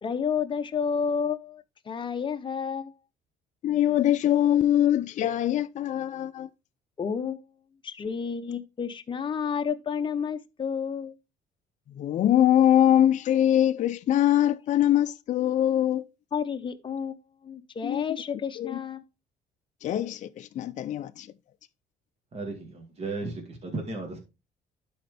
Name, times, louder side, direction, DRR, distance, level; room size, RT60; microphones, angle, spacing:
voice 1, 0.0-2.9 7.0-7.4 7.8-11.1 16.3-17.2 17.4-19.0, left 6 dB, 30° left, 0.8 m, -30 dB
voice 2, 3.6-6.5 11.9-16.0 17.8-18.0 18.6-18.8 19.8-21.3, left 11 dB, 45° left, 0.4 m, -23 dB
voice 3, 22.3-24.2, right 3 dB, 35° right, 2.3 m, -35 dB
11.5 x 4.3 x 3.4 m
cardioid pair, 110°, 17 cm